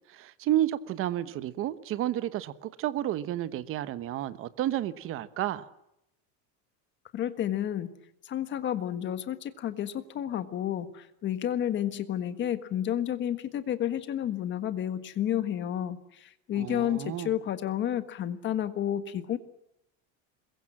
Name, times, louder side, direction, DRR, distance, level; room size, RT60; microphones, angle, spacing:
voice 1, 0.1-5.7 16.5-17.3, right 13 dB, 35° right, 1.2 m, -31 dB
voice 2, 7.1-7.9 8.2-19.4, left 10 dB, 30° left, 1.6 m, -31 dB
26.5 x 22.5 x 7.6 m
cardioid pair, 170°, 38 cm